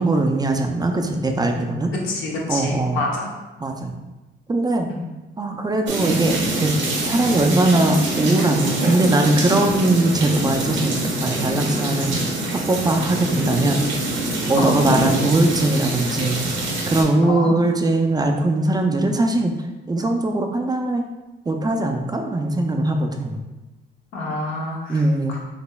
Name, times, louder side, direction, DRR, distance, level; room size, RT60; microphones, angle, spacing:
voice 1, 0.0-1.9 2.5-3.0 3.6-4.0 4.5-4.9 5.4-6.7 7.0-12.1 12.5-13.8 14.5-16.4 16.9-19.5 19.9-21.0 21.5-23.4 24.9-25.4, right 2 dB, 20° right, 3 dB, 0.3 m, -20 dB
voice 2, 2.0-3.3 4.9-5.1 14.6-14.7 17.2-17.5 24.1-25.0 25.3-25.4, left 2 dB, 90° left, -2 dB, 0.9 m, -27 dB
sound 1, 5.9-17.0, right 1 dB, 70° right, 0.9 m, -24 dB
4.1 x 3.1 x 2.2 m, 1.1 s
cardioid pair, 90°, 20 cm